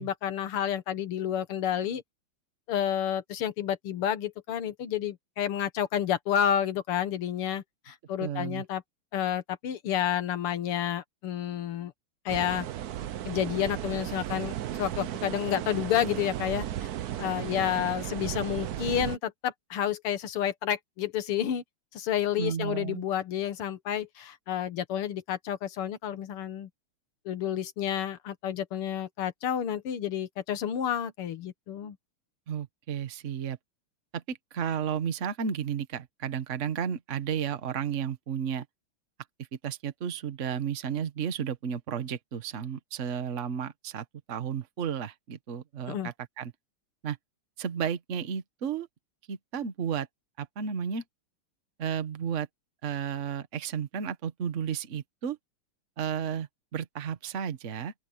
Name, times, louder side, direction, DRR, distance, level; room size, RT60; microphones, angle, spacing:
voice 1, 0.0-2.0 2.7-8.8 9.1-11.9 12.3-12.7 13.3-16.9 17.2-21.6 21.9-26.7 27.3-32.0 45.9-46.1, left 10 dB, 90° left, 2.2 m, -30 dB
voice 2, 8.2-8.6 22.4-23.0 32.5-33.6 34.1-38.6 39.6-46.5 47.0-47.2 47.6-48.9 49.3-50.1 50.4-51.0 51.8-52.5 52.8-55.4 56.0-57.9, right 8 dB, 40° right, 1.4 m, -33 dB
sound 1, 12.3-19.2, right 11 dB, 65° right, 0.9 m, -35 dB
open air
omnidirectional pair, 2.4 m